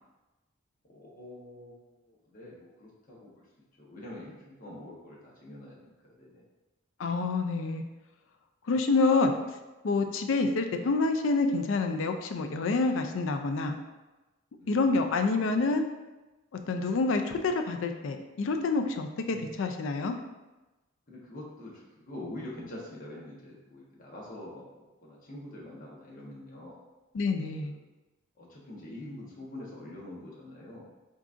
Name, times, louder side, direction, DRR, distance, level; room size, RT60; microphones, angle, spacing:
voice 1, 0.9-3.5 3.8-6.4 14.6-15.0 19.2-19.5 19.7-19.8 21.1-26.8 27.6-27.8 28.4-30.9, left 1 dB, 40° left, -4 dB, 1.0 m, -45 dB
voice 2, 7.0-7.8 8.7-9.3 9.8-13.8 14.7-15.8 16.7-20.2 27.1-27.7, left 3 dB, 65° left, 6 dB, 0.4 m, -27 dB
3.9 x 3.6 x 2.5 m, 1.1 s
head